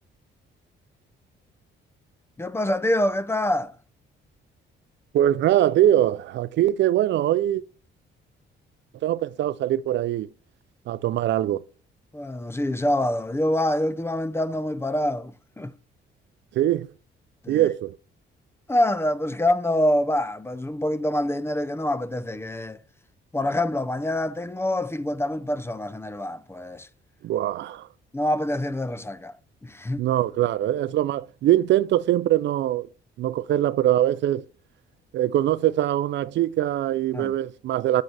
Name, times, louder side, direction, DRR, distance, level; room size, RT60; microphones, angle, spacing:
voice 1, 2.4-3.7 12.1-15.7 17.4-17.7 18.7-22.8 23.3-26.9 28.1-29.3 29.6-30.0 37.1-37.3, left 1 dB, 10° left, 0.5 m, -26 dB
voice 2, 5.1-7.6 9.0-10.3 10.9-11.6 16.5-16.9 17.5-18.0 27.2-27.9 30.0-32.9 33.2-34.4 35.1-38.0, right 12 dB, 65° right, 0.4 m, -22 dB
8.6 x 3.9 x 3.3 m
cardioid pair, 90°, 20 cm